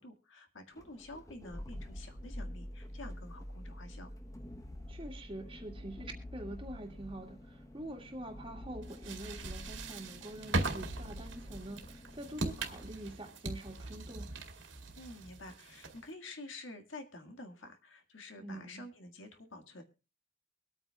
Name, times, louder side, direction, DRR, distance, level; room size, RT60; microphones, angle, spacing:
voice 1, 0.0-4.1 15.0-19.8, left 2 dB, 70° left, 1.8 m, -49 dB
sound 1, 0.7-12.9, left 1 dB, 15° left, 0.9 m, -47 dB
voice 2, 4.9-14.3 18.4-18.8, right 1 dB, 25° right, 2.0 m, -45 dB
sound 2, 8.8-16.1, right 2 dB, 65° right, 2.2 m, -40 dB
23.5 x 9.0 x 2.3 m
head